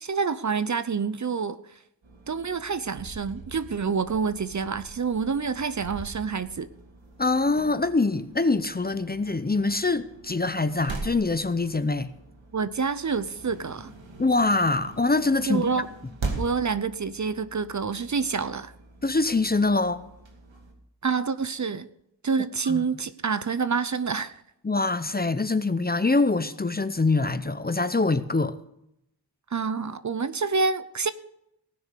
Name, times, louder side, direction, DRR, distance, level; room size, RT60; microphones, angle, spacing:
voice 1, 0.0-1.8 2.3-6.7 12.5-13.9 15.5-15.9 16.4-18.7 21.0-21.9 22.2-24.4 29.5-31.1, right 5 dB, 40° right, 0.6 m, -27 dB
sound 1, 2.0-20.7, right 3 dB, 90° right, 2.4 m, -42 dB
voice 2, 7.2-12.1 14.2-15.7 19.0-20.0 22.7-22.8 24.6-28.6, left 3 dB, 20° left, 0.6 m, -24 dB
18.5 x 6.5 x 6.6 m
wide cardioid pair, 90°, 44 cm